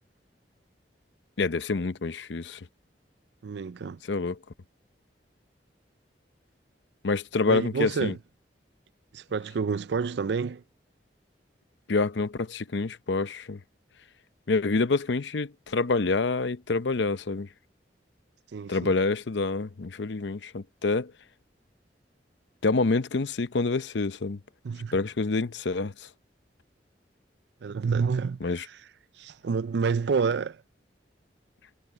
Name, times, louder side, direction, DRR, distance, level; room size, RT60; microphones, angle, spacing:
voice 1, 1.4-2.7 4.1-4.4 7.0-8.1 11.9-13.6 14.5-17.5 18.7-21.1 22.6-24.4 24.9-26.1 28.4-28.6, left 3 dB, 80° left, 0.7 m, -27 dB
voice 2, 3.4-4.0 7.5-8.2 9.1-10.6 18.5-18.9 24.6-25.0 27.6-28.5 29.2-30.6, right 5 dB, 70° right, 0.4 m, -28 dB
head